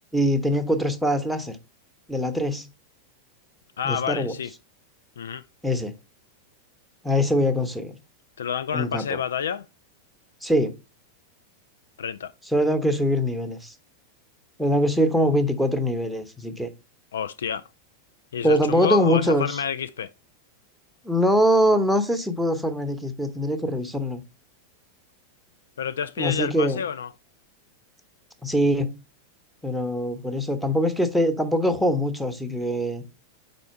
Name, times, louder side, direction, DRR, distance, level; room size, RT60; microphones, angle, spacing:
voice 1, 0.1-1.6 2.1-2.7 3.8-4.3 5.6-5.9 7.0-8.0 8.7-9.2 10.4-10.7 12.5-13.7 14.6-16.7 18.4-19.6 21.0-24.2 26.2-26.8 28.4-29.0 29.6-33.0, equal, ahead, 0.8 m, -23 dB
voice 2, 3.8-4.5 5.2-5.4 8.4-9.6 12.0-12.3 17.1-17.7 18.3-20.1 25.8-27.1, left 8 dB, 65° left, 0.3 m, -29 dB
5.2 x 4.3 x 4.5 m
figure-of-eight pair, 90°, 0 cm